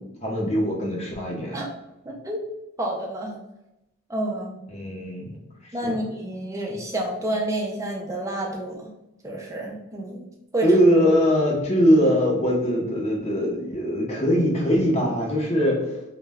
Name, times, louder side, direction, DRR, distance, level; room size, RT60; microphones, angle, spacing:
voice 1, 0.0-1.6 4.7-5.4 5.6-6.0 10.6-15.8, equal, 30° left, -3 dB, 0.6 m, -22 dB
voice 2, 2.1-2.4 2.8-3.4 4.1-4.6 5.7-8.9 9.2-10.2 10.5-10.7, right 1 dB, 15° right, -1 dB, 0.4 m, -29 dB
2.2 x 2.0 x 3.4 m, 0.90 s
head